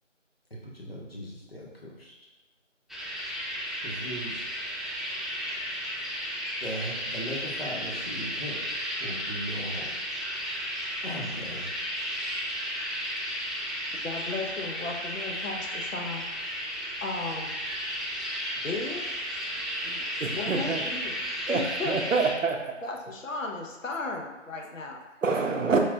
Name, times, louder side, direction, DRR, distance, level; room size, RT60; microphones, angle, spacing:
voice 1, 0.6-2.1 3.8-4.4 6.6-8.6 9.0-9.9 11.0-11.6, equal, 50° left, -3 dB, 0.8 m, -38 dB
sound 1, 2.9-22.3, equal, ahead, 0.3 m, -34 dB
voice 2, 14.0-16.2 17.0-17.6 18.6-19.0 19.5-21.2 21.5-22.0 22.8-25.0, left 3 dB, 85° left, 1 dB, 0.7 m, -35 dB
voice 3, 20.2-20.8 21.5-22.8 25.2-25.8, right 4 dB, 80° right, 3 dB, 0.6 m, -26 dB
4.7 x 2.7 x 2.2 m, 1.1 s
figure-of-eight pair, 180°, 38 cm